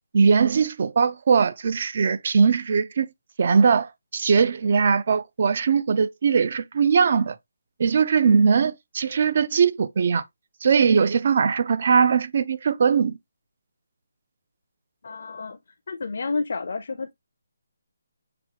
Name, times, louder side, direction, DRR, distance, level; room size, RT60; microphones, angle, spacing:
voice 1, 0.1-3.1 3.4-7.4 7.8-10.2 10.6-13.2, right 5 dB, 40° right, 0.4 m, -20 dB
voice 2, 15.0-15.6 15.9-17.1, left 4 dB, 60° left, 0.5 m, -30 dB
5.9 x 2.3 x 2.8 m
hypercardioid pair, 170°, 0 cm